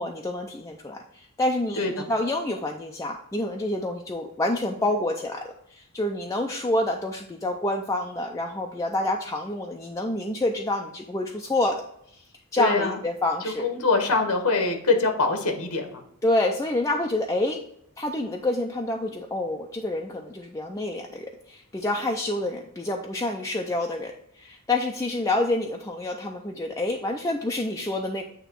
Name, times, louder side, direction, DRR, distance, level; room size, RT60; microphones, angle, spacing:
voice 1, 0.0-11.8 12.1-12.2 12.5-13.7 16.2-17.6 18.0-28.2, left 1 dB, 15° left, 0 dB, 0.4 m, -28 dB
voice 2, 12.6-13.0 13.6-16.0, left 3 dB, 85° left, 5 dB, 1.2 m, -24 dB
8.8 x 3.0 x 4.5 m, 0.72 s
head